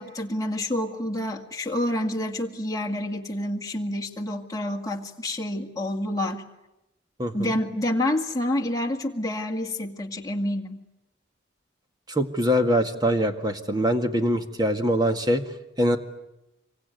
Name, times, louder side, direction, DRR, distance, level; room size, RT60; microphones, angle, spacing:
voice 1, 0.0-6.5 7.3-10.8, left 1 dB, 20° left, 1 dB, 2.1 m, -28 dB
voice 2, 7.2-7.5 12.1-15.4 15.8-16.0, equal, 20° right, 6 dB, 1.8 m, -23 dB
26.5 x 24.0 x 9.3 m, 0.93 s
head